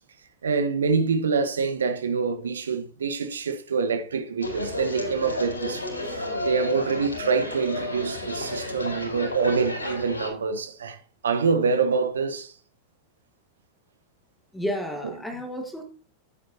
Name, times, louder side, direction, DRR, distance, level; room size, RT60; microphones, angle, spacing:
voice 1, 0.4-11.0 11.2-12.5 15.0-15.1, right 5 dB, 70° right, 1.3 m, -26 dB
sound 1, 4.4-10.3, left 2 dB, 80° left, 4.2 m, -32 dB
voice 2, 14.5-15.8, equal, 5° left, 1.6 m, -31 dB
11.0 x 9.5 x 2.8 m
figure-of-eight pair, 90°, 0 cm